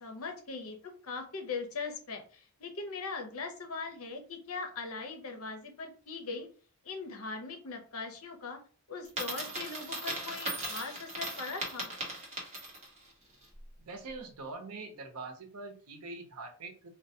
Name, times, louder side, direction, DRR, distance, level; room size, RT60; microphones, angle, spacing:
voice 1, 0.0-6.5 6.8-8.6 8.9-11.9, left 4 dB, 75° left, 5 dB, 0.7 m, -40 dB
Coin (dropping), 9.1-13.0, right 2 dB, 30° right, 1.0 m, -38 dB
voice 2, 13.9-16.9, right 3 dB, 85° right, 5 dB, 0.7 m, -43 dB
3.7 x 2.2 x 2.7 m, 0.41 s
head